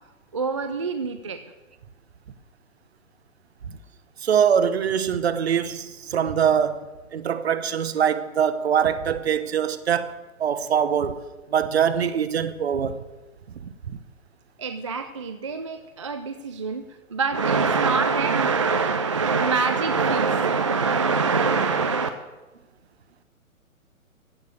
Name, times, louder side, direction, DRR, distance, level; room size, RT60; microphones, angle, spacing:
voice 1, 0.3-1.5 14.6-22.1, right 4 dB, 25° right, 0.4 m, -24 dB
voice 2, 4.2-11.2 11.5-13.0 13.6-14.0, right 8 dB, 50° right, 1.1 m, -23 dB
15.5 x 6.7 x 9.0 m
figure-of-eight pair, 125°, 41 cm